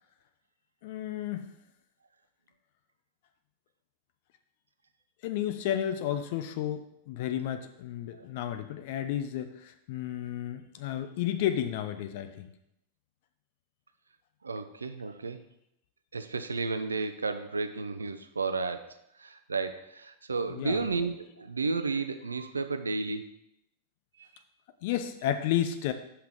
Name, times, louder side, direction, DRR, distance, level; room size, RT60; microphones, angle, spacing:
voice 1, 0.8-1.5 5.2-12.5 20.5-20.8 24.8-25.9, left 11 dB, 50° left, 9 dB, 0.8 m, -32 dB
voice 2, 14.4-15.4 16.1-23.4 24.2-24.4, right 4 dB, 75° right, 10 dB, 0.6 m, -33 dB
5.8 x 5.7 x 6.5 m, 0.79 s
figure-of-eight pair, 90°, 0 cm